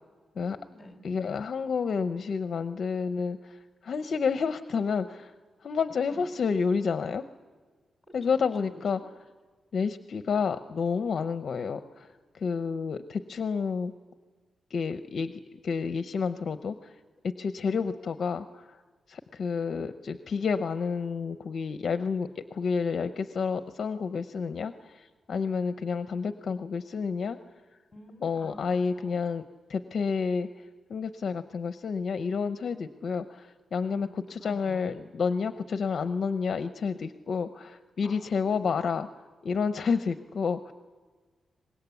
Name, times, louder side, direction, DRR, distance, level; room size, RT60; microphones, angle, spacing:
voice 1, 0.4-1.0 6.1-6.2 8.1-9.1 17.7-17.8 27.9-28.6 28.9-29.2 33.8-34.9 38.0-38.9, left 1 dB, 15° left, 5 dB, 3.5 m, -49 dB
voice 2, 1.0-5.3 5.6-7.2 8.1-9.0 9.7-12.1 12.3-13.9 14.7-16.9 17.2-18.8 19.1-27.4 28.2-29.4 29.7-30.5 30.9-39.1 39.4-40.7, left 5 dB, 50° left, 9 dB, 0.7 m, -30 dB
24.5 x 21.0 x 8.3 m, 1.4 s
wide cardioid pair, 165°, 0 cm